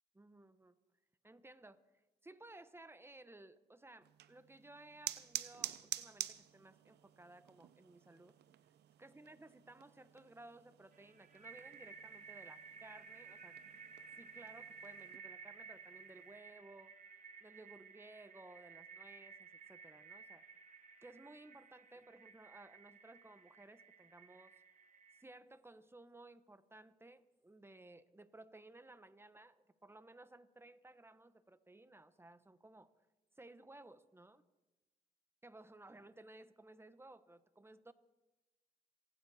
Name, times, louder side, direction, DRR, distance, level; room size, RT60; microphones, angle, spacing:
voice 1, 0.1-0.8 1.2-1.8 2.2-8.4 9.0-13.6 14.2-17.0 17.4-20.5 21.0-24.6 25.2-32.9 33.4-34.4 35.4-37.9, right 2 dB, 15° right, 12 dB, 1.1 m, -58 dB
sound 1, 4.0-15.2, right 12 dB, 75° right, 0.7 m, -49 dB
sound 2, 10.9-25.2, right 5 dB, 50° right, 1.4 m, -56 dB
27.5 x 9.8 x 4.2 m, 1.1 s
supercardioid pair, 60°, 18 cm